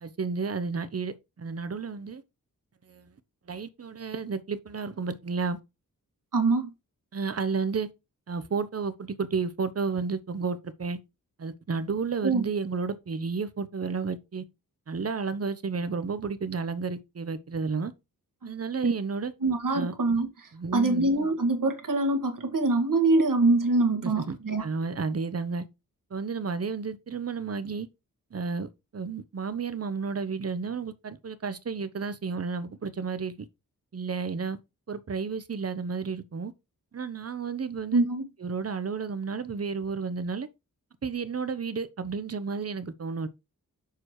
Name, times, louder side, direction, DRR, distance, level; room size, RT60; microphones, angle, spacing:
voice 1, 0.0-2.2 2.9-3.1 3.5-5.6 7.1-7.9 8.3-11.0 11.4-14.4 14.9-17.9 18.4-19.3 19.7-20.0 20.5-21.1 24.0-25.6 26.1-27.9 28.3-33.3 33.9-34.6 34.9-36.5 36.9-38.1 38.4-40.5 41.0-43.3, right 5 dB, 45° right, 0.9 m, -32 dB
voice 2, 6.3-6.7 12.2-12.4 18.8-18.9 19.4-20.3 20.7-24.6 37.9-38.2, right 2 dB, 65° right, 1.7 m, -24 dB
6.7 x 4.7 x 4.8 m
wide cardioid pair, 115°, 35 cm